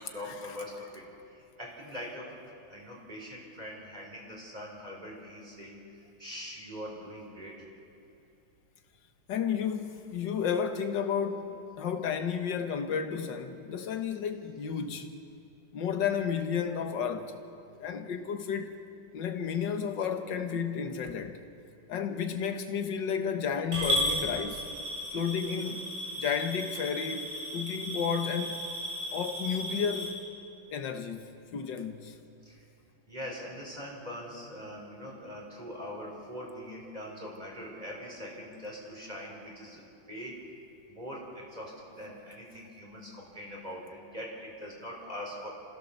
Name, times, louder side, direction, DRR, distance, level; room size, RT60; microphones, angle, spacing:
voice 1, 0.0-2.4 2.7-7.6 32.4-32.6 33.1-40.5 40.9-45.5, equal, 20° right, 4.2 m, -42 dB
voice 2, 9.3-15.1 15.7-17.4 17.8-18.8 19.1-21.4 21.9-24.6 25.1-25.9 26.2-28.6 29.1-30.2 30.7-32.2, left 7 dB, 60° left, 1.8 m, -32 dB
Coin (dropping) / Glass, 23.7-30.1, equal, 75° right, 8.7 m, -34 dB
28.0 x 15.5 x 7.1 m
omnidirectional pair, 2.3 m